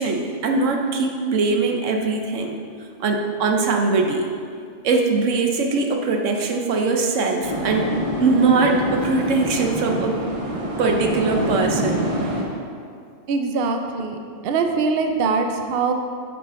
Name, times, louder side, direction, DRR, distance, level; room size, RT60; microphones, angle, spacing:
voice 1, 0.0-2.6 3.0-4.3 4.8-7.9 8.2-10.2 10.8-12.1, right 3 dB, 85° right, 3 dB, 1.1 m, -21 dB
sound 1, 7.4-12.4, equal, 30° right, 1.0 m, -26 dB
voice 2, 13.3-14.2 14.4-15.9, right 4 dB, 60° right, 5 dB, 0.7 m, -22 dB
9.0 x 5.0 x 3.7 m, 2.2 s
omnidirectional pair, 1.3 m